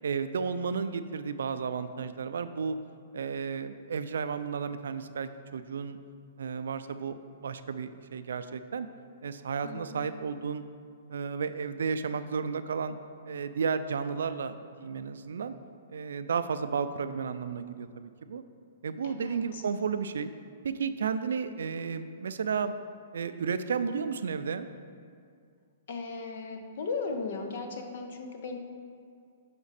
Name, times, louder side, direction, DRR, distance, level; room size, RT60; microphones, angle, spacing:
voice 1, 0.0-2.8 3.1-6.0 6.4-8.9 9.2-10.6 11.1-13.0 13.3-15.6 15.9-18.4 18.8-20.3 20.6-22.7 23.1-24.7, right 6 dB, 85° right, 12 dB, 0.3 m, -33 dB
voice 2, 9.6-10.1 19.0-19.6 25.9-28.6, left 4 dB, 60° left, 5 dB, 0.7 m, -37 dB
6.0 x 5.0 x 4.1 m, 2.2 s
hypercardioid pair, 150°, 0 cm